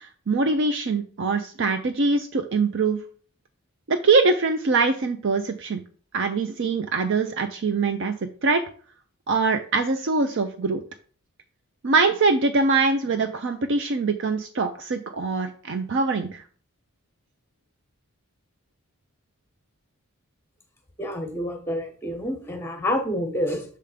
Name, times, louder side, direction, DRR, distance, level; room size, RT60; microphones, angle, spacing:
voice 1, 0.0-3.0 3.9-5.8 6.1-8.1 8.4-8.6 9.3-10.8 11.8-16.4, right 3 dB, 55° right, 7 dB, 0.5 m, -23 dB
voice 2, 21.0-23.6, left 1 dB, 10° left, 4 dB, 1.0 m, -28 dB
6.7 x 3.5 x 5.0 m, 0.42 s
head